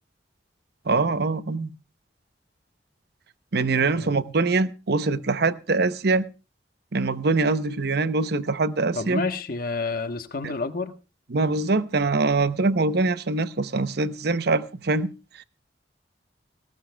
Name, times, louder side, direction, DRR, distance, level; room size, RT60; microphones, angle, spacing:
voice 1, 0.9-1.7 3.5-6.3 6.9-9.2 10.4-10.5 11.3-15.1 15.4-15.5, right 3 dB, 65° right, 0.8 m, -23 dB
voice 2, 3.7-4.2 8.9-10.9, left 3 dB, 55° left, 1.2 m, -30 dB
19.5 x 17.5 x 2.3 m
head